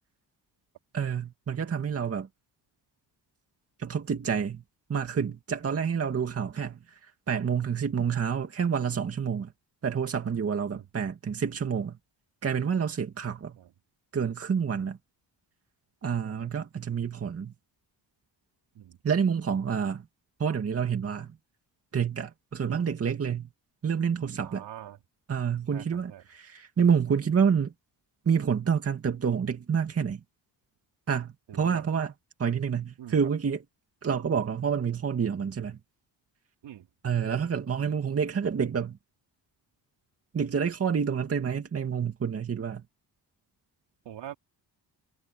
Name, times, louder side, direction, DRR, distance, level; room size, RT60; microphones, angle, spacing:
voice 1, 0.9-2.3 3.8-4.6 4.9-6.8 7.3-9.5 9.8-12.0 12.4-13.6 14.1-15.0 16.0-17.5 19.0-20.1 20.4-21.3 21.9-23.5 23.8-24.6 25.3-27.7 28.3-30.2 31.1-32.1 32.4-33.6 34.0-35.8 37.0-39.0 40.3-42.8, right 7 dB, 35° right, 2.2 m, -28 dB
voice 2, 24.4-25.0 25.7-26.2 31.5-31.8 33.0-33.1 36.6-36.9 44.1-44.3, right 11 dB, 70° right, 3.6 m, -44 dB
cardioid pair, 160°, 43 cm